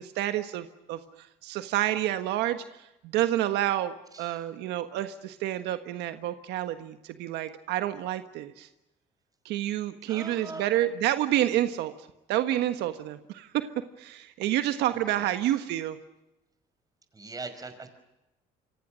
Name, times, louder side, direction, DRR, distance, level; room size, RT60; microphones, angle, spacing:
voice 1, 0.0-8.7 9.4-11.9 12.3-16.0, right 13 dB, 85° right, 9 dB, 1.5 m, -29 dB
voice 2, 4.1-4.4 10.1-10.8 15.1-15.6 17.1-17.9, right 3 dB, 20° right, 10 dB, 5.4 m, -41 dB
28.0 x 24.5 x 6.4 m, 0.94 s
cardioid pair, 110°, 17 cm